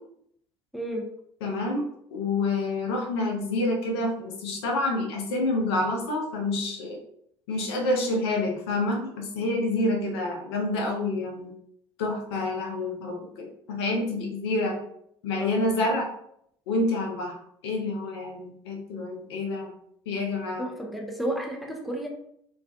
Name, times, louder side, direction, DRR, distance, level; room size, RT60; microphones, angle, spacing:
voice 1, 0.7-1.1 15.4-15.8 20.6-22.1, right 1 dB, ahead, 0 dB, 0.5 m, -32 dB
voice 2, 1.4-7.0 7.5-11.5 12.0-14.8 15.2-16.1 16.7-17.4 17.6-19.7 20.1-20.7, left 2 dB, 70° left, 1 dB, 0.5 m, -28 dB
2.3 x 2.2 x 2.4 m, 0.71 s
figure-of-eight pair, 55°, 14 cm